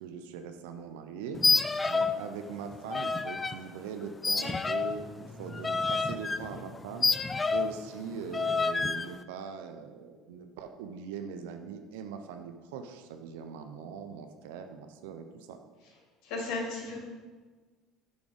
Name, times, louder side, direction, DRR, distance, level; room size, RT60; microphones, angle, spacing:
voice 1, 0.0-1.4 1.9-7.1 7.5-15.6, right 6 dB, 85° right, 7 dB, 0.4 m, -41 dB
sound 1, 1.3-2.2 2.5-3.6 4.2-7.8 8.3-9.1, left 4 dB, 20° left, 0.3 m, -29 dB
voice 2, 16.2-17.0, left 3 dB, 70° left, -2 dB, 2.2 m, -34 dB
7.0 x 3.8 x 4.9 m, 1.4 s
supercardioid pair, 85°, 0 cm